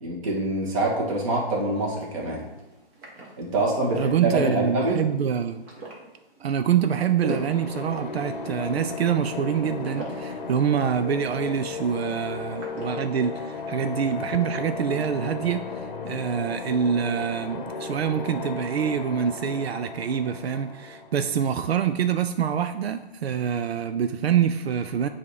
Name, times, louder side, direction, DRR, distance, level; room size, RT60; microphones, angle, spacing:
voice 1, 0.0-2.4 3.4-5.0, right 2 dB, 35° right, -2 dB, 1.6 m, -25 dB
sound 1, 1.6-14.5, right 2 dB, 10° right, 0.6 m, -42 dB
voice 2, 3.9-5.6 6.4-25.1, right 8 dB, 90° right, 9 dB, 0.5 m, -26 dB
sound 2, 7.3-22.0, left 4 dB, 55° left, 0.8 m, -35 dB
8.2 x 2.8 x 4.7 m, 0.98 s
hypercardioid pair, 155°, 30 cm